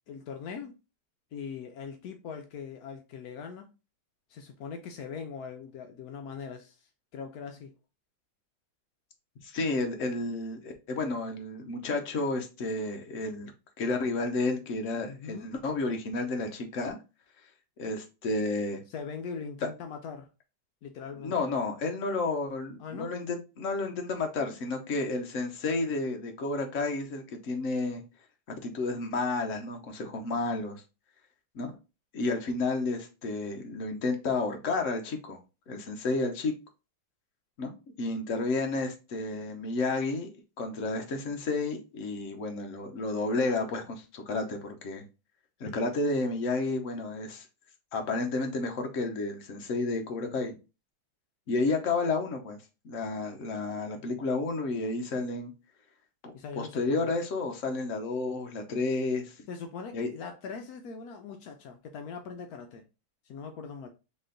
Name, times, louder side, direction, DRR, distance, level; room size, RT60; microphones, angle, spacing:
voice 1, 0.1-0.7 1.3-3.7 4.3-7.7 15.0-15.5 18.9-20.3 20.8-21.5 22.8-23.1 56.3-57.1 59.5-62.8 63.2-63.9, left 6 dB, 80° left, 0.8 m, -41 dB
voice 2, 9.4-13.5 13.8-17.0 17.8-18.8 21.2-28.0 28.6-30.8 31.5-31.7 32.1-35.4 35.7-36.5 37.6-37.7 38.0-40.3 40.6-45.0 45.6-47.5 47.9-50.5 51.5-52.6 52.8-55.5 56.2-59.4 59.9-60.1, left 3 dB, 55° left, 0.9 m, -31 dB
4.2 x 3.0 x 3.8 m
omnidirectional pair, 2.3 m